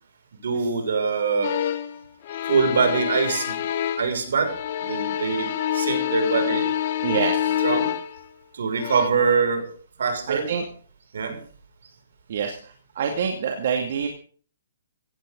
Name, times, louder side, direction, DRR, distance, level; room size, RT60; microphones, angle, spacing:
voice 1, 0.4-1.6 2.5-3.6 4.0-4.5 4.8-6.7 7.6-7.9 8.5-10.5 11.1-11.4, right 5 dB, 70° right, 5 dB, 6.3 m, -24 dB
sound 1, 1.4-2.0 2.2-4.2 4.5-8.2 8.8-9.1, left 10 dB, 40° left, 1.2 m, -26 dB
voice 2, 7.0-7.6 10.3-10.6 12.3-14.1, right 7 dB, 50° right, 2 dB, 2.5 m, -26 dB
17.0 x 16.0 x 4.0 m, 0.43 s
hypercardioid pair, 160°, 0 cm